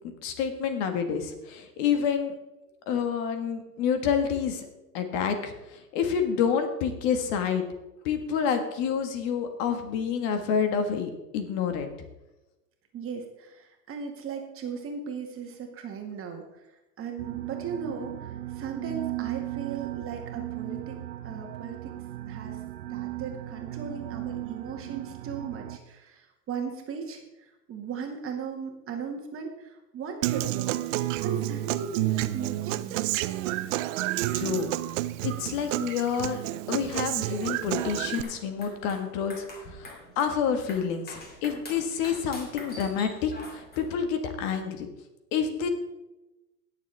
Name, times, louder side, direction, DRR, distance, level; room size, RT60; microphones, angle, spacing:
voice 1, 0.2-2.3 2.9-4.7 4.9-7.6 8.0-11.9 34.3-34.7 35.2-36.4 36.7-39.4 39.7-44.9 45.3-45.7, left 7 dB, 50° left, 6 dB, 1.7 m, -28 dB
voice 2, 12.9-16.4 17.0-21.0 21.2-21.9 22.3-22.6 22.9-30.8 31.2-33.1, right 6 dB, 25° right, 3 dB, 1.8 m, -37 dB
sound 1, 17.2-25.8, right 15 dB, 70° right, 1.0 m, -37 dB
Human voice / Acoustic guitar, 30.2-38.2, right 16 dB, 50° right, 0.6 m, -29 dB
sound 2, 38.0-44.0, left 2 dB, 20° left, 2.5 m, -46 dB
18.0 x 7.1 x 3.4 m, 1.0 s
supercardioid pair, 130°, 48 cm